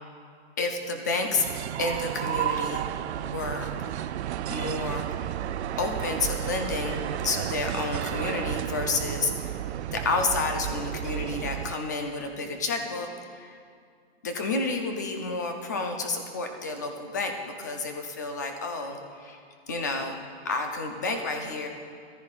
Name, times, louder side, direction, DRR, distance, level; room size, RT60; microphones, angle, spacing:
voice 1, 0.6-1.5 1.8-2.9 3.2-3.7 4.5-5.1 5.8-9.6 9.9-13.5 14.2-19.4 19.7-20.2 20.4-21.7, left 3 dB, 20° left, 4 dB, 0.3 m, -30 dB
sound 1, 1.3-11.8, right 11 dB, 85° right, 0.5 m, -32 dB
14.5 x 13.0 x 2.4 m, 2.2 s
hypercardioid pair, 165°, 32 cm